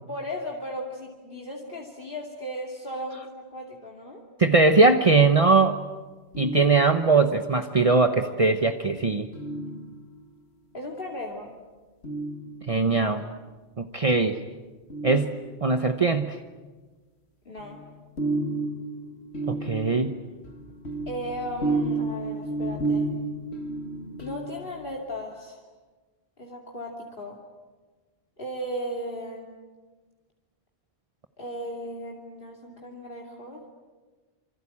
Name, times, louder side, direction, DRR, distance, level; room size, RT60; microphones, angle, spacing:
voice 1, 0.1-4.2 10.7-11.5 17.4-17.8 21.1-23.1 24.2-25.6 26.4-27.4 28.4-29.5 31.4-33.7, equal, 55° left, -1 dB, 2.9 m, -36 dB
voice 2, 4.4-5.8 6.4-9.3 12.7-13.3 13.8-14.4 15.0-15.3 15.6-16.4 19.5-20.1, right 3 dB, 35° right, 7 dB, 1.0 m, -20 dB
sound 1, 6.3-7.4 9.3-10.4 12.0-13.1 14.9-16.0 17.6-24.9, right 2 dB, 90° left, 2.3 m, -32 dB
26.5 x 26.0 x 8.6 m, 1.3 s
omnidirectional pair, 1.1 m